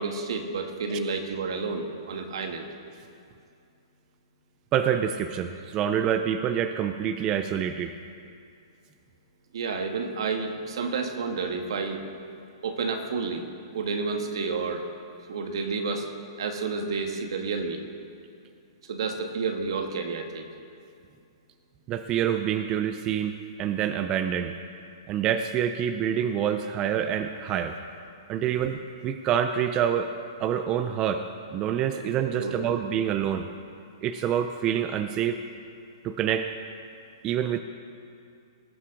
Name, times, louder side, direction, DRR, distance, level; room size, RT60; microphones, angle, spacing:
voice 1, 0.0-2.7 9.5-12.0 12.6-13.5 13.7-14.9 15.3-16.1 16.4-17.8 18.8-20.5 28.4-28.7 31.9-32.8, right 4 dB, 75° right, 5 dB, 1.6 m, -30 dB
voice 2, 4.7-7.9 21.9-24.5 25.1-27.8 28.3-30.1 30.4-31.2 31.5-33.5 34.0-35.4 36.0-36.5 37.2-37.6, right 9 dB, 25° right, 9 dB, 0.4 m, -27 dB
19.0 x 9.6 x 3.8 m, 2.4 s
hypercardioid pair, 155°, 3 cm